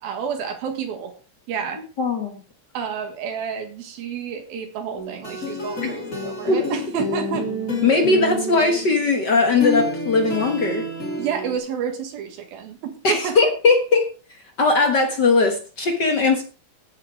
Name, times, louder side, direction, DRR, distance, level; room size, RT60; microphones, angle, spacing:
voice 1, 0.0-1.1 1.5-1.8 2.7-7.5 11.2-13.4, right 7 dB, 80° right, 5 dB, 3.4 m, -29 dB
voice 2, 2.0-2.4 6.5-6.6 7.8-10.9 13.0-14.1 14.6-16.4, left 3 dB, 55° left, 5 dB, 1.2 m, -19 dB
sound 1, 4.9-11.6, left 1 dB, 25° left, 2.7 m, -29 dB
15.5 x 7.6 x 4.9 m, 0.36 s
omnidirectional pair, 4.2 m